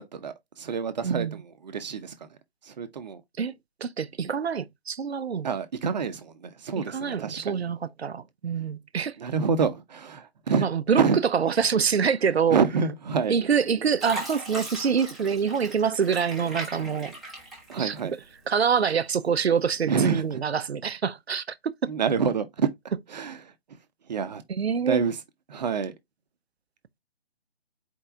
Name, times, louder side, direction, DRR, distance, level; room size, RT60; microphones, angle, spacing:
voice 1, 0.0-2.1 2.6-3.2 5.4-7.6 9.2-10.7 11.0-11.2 12.5-13.4 17.7-18.1 19.9-20.3 21.9-22.7 23.1-23.5 24.1-24.4 24.8-25.2 25.5-25.9, right 6 dB, 40° right, 0.8 m, -27 dB
voice 2, 1.0-1.4 3.4-3.5 3.8-5.5 6.8-9.2 10.6-11.0 11.3-12.6 13.3-17.2 17.8-17.9 18.5-21.4 21.8-21.9 24.5-25.0, right 6 dB, 75° right, 0.6 m, -25 dB
Fill (with liquid), 13.2-13.6 14.0-18.4 18.8-19.6 20.2-20.3, right 2 dB, ahead, 1.0 m, -39 dB
4.6 x 4.4 x 2.5 m
figure-of-eight pair, 145°, 32 cm